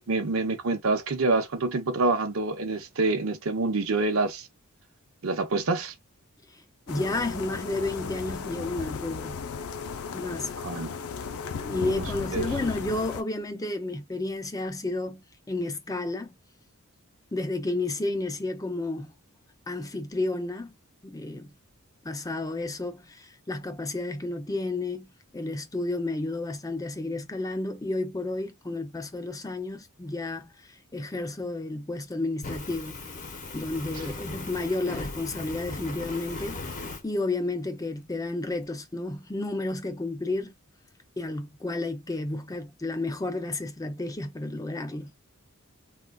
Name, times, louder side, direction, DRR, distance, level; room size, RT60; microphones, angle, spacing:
voice 1, 0.0-4.5 5.2-5.9 10.6-11.0 11.9-12.1 12.3-12.5, right 3 dB, 65° right, 0.7 m, -27 dB
voice 2, 6.5-9.4 10.1-10.6 11.6-16.3 17.3-19.1 19.7-20.7 21.0-21.5 22.0-33.0 33.5-40.5 41.2-45.1, left 2 dB, 15° left, 0.4 m, -32 dB
sound 1, 6.9-13.2, left 6 dB, 75° left, 0.5 m, -35 dB
Fire, 32.4-37.0, left 3 dB, 35° left, 0.7 m, -38 dB
3.6 x 2.4 x 2.2 m
head